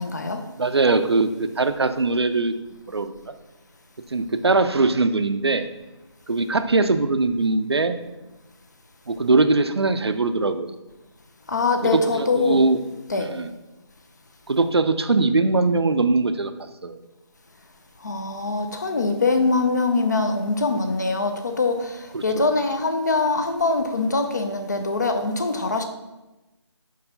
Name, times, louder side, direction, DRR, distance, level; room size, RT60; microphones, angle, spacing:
voice 1, 0.0-0.4 11.5-12.6 13.1-13.3 18.0-25.8, left 3 dB, 35° left, 6 dB, 0.6 m, -23 dB
voice 2, 0.6-2.5 2.9-3.1 4.1-5.7 6.3-8.0 9.1-10.7 11.9-12.8 13.1-13.5 14.5-16.5 16.8-17.0 22.1-22.4, right 3 dB, 60° right, 9 dB, 0.5 m, -21 dB
4.7 x 4.7 x 5.4 m, 1.0 s
figure-of-eight pair, 160°, 15 cm